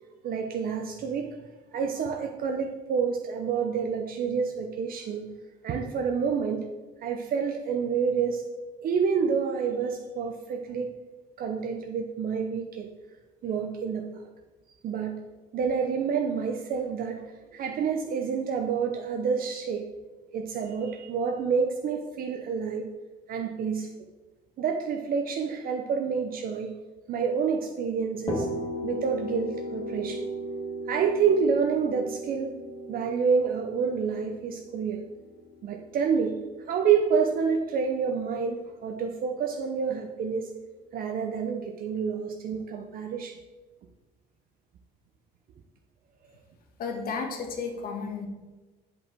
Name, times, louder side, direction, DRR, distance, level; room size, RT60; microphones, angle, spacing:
voice 1, 0.2-1.3 1.7-5.3 5.6-6.6 7.0-8.5 8.8-10.9 11.4-12.9 13.4-14.2 14.8-15.1 15.5-17.2 17.5-19.9 20.3-22.9 23.3-23.9 24.6-26.7 27.1-28.5 28.8-30.2 30.9-32.5 32.9-35.0 35.6-36.3 36.7-40.5 40.9-43.4, right 6 dB, 60° right, 3 dB, 0.7 m, -28 dB
sound 1, 28.3-36.0, equal, 30° left, 2.0 m, -35 dB
voice 2, 46.8-48.3, left 5 dB, 60° left, 3 dB, 1.5 m, -33 dB
8.2 x 5.3 x 4.4 m, 1.2 s
cardioid pair, 110°, 17 cm